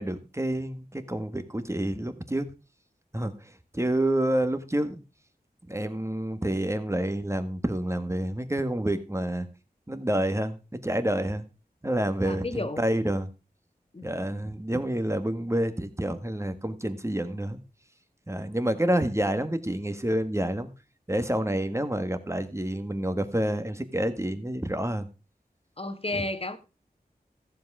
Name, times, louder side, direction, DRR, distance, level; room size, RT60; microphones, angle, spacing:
voice 1, 0.0-2.5 3.1-5.0 5.7-9.5 9.9-10.6 10.8-11.4 11.8-13.3 14.0-17.6 18.3-20.7 21.1-25.1 26.1-26.3, right 1 dB, 15° right, 1.6 m, -28 dB
voice 2, 12.2-12.8 13.9-14.2 25.8-26.6, left 2 dB, 35° left, 1.5 m, -32 dB
14.5 x 7.7 x 4.9 m
wide cardioid pair, 70°, 16 cm